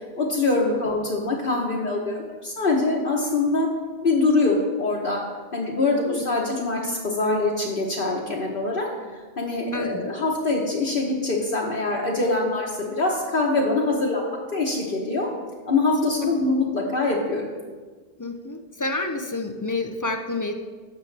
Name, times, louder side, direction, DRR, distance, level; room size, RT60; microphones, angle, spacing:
voice 1, 0.2-3.7 4.0-5.2 5.5-8.9 9.4-14.2 14.5-15.3 15.6-17.5, left 3 dB, 60° left, -3 dB, 1.2 m, -24 dB
voice 2, 9.7-10.1 18.2-20.5, left 2 dB, 30° left, 5 dB, 0.4 m, -29 dB
12.0 x 7.1 x 3.3 m, 1.4 s
omnidirectional pair, 1.0 m